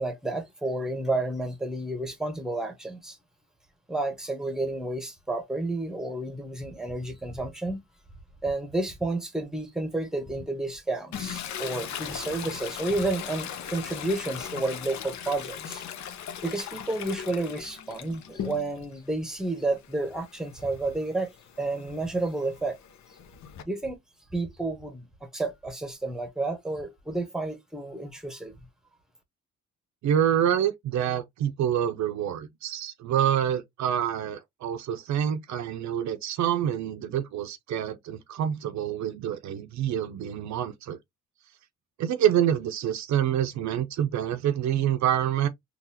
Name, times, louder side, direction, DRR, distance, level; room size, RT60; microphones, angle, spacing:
voice 1, 0.0-3.2 3.9-7.8 8.4-15.8 16.4-21.3 21.6-22.8 23.7-24.0 24.3-28.5, right 2 dB, ahead, 0.9 m, -31 dB
Toilet flush, 11.1-18.9 19.3-23.6, left 9 dB, 65° left, 0.8 m, -39 dB
voice 2, 30.0-41.0 42.0-45.5, right 10 dB, 70° right, 0.6 m, -27 dB
3.8 x 2.4 x 2.7 m
cardioid pair, 90°, 30 cm